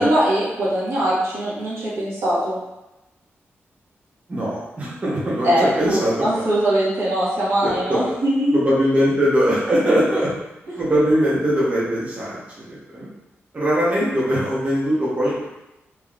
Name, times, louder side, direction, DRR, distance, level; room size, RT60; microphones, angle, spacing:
voice 1, 0.0-2.6 5.4-8.6, right 1 dB, 85° right, -8 dB, 1.3 m, -21 dB
voice 2, 4.3-6.4 7.6-8.0 8.5-10.3 10.7-12.4 12.7-13.1 13.5-15.5, equal, 30° right, -7 dB, 0.9 m, -21 dB
3.6 x 3.0 x 2.4 m, 0.96 s
wide cardioid pair, 145°, 5 cm